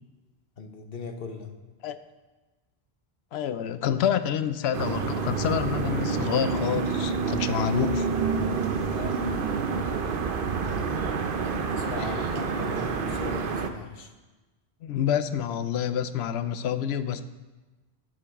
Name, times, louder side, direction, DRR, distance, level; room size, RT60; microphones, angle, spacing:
voice 1, 0.6-1.5 8.9-9.3 11.7-14.1, left 3 dB, 60° left, 5 dB, 1.1 m, -38 dB
voice 2, 3.3-8.1 12.0-12.1 14.8-17.3, left 9 dB, 80° left, 12 dB, 0.8 m, -28 dB
sound 1, 4.7-13.7, right 5 dB, 60° right, 0.8 m, -28 dB
11.5 x 6.9 x 3.6 m, 1.2 s
omnidirectional pair, 1.1 m